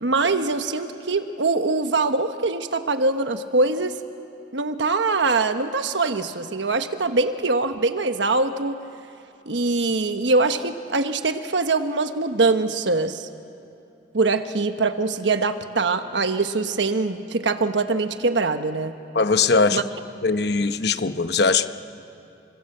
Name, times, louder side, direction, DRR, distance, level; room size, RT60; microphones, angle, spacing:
voice 1, 0.0-4.0 4.5-8.8 9.5-13.3 14.1-18.9 19.7-19.8, right 3 dB, 80° right, 8 dB, 1.2 m, -23 dB
voice 2, 19.1-19.8 20.2-21.7, left 4 dB, 65° left, 9 dB, 1.0 m, -20 dB
29.0 x 25.5 x 7.9 m, 2.8 s
head